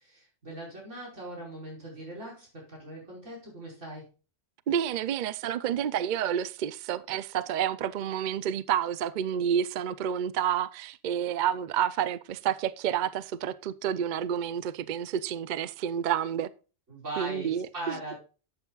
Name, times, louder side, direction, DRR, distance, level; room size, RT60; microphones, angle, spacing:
voice 1, 0.0-4.1 16.9-18.2, right 1 dB, 80° right, 5.5 m, -40 dB
voice 2, 4.7-16.5 17.2-18.1, right 9 dB, 60° right, 0.5 m, -29 dB
11.5 x 8.3 x 2.4 m
omnidirectional pair, 1.2 m